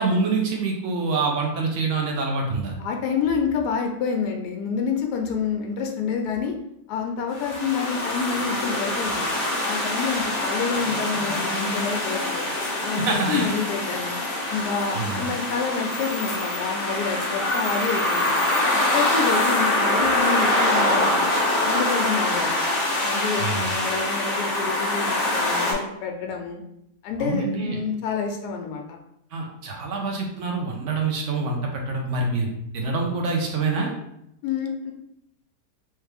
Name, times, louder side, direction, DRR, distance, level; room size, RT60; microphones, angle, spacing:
voice 1, 0.0-2.7 13.1-13.5 14.9-15.3 23.4-23.7 27.2-27.8 29.3-32.5 32.7-33.9, right 3 dB, 60° right, 1 dB, 0.9 m, -26 dB
voice 2, 2.8-6.6 6.9-9.3 9.6-12.5 12.8-18.3 18.9-21.3 21.6-22.7 23.0-26.6 27.0-29.0 34.4-34.9, left 5 dB, 80° left, 3 dB, 1.2 m, -28 dB
sound 1, 7.3-25.7, left 1 dB, 50° left, 1.3 m, -24 dB
3.2 x 3.1 x 3.3 m, 0.78 s
omnidirectional pair, 1.7 m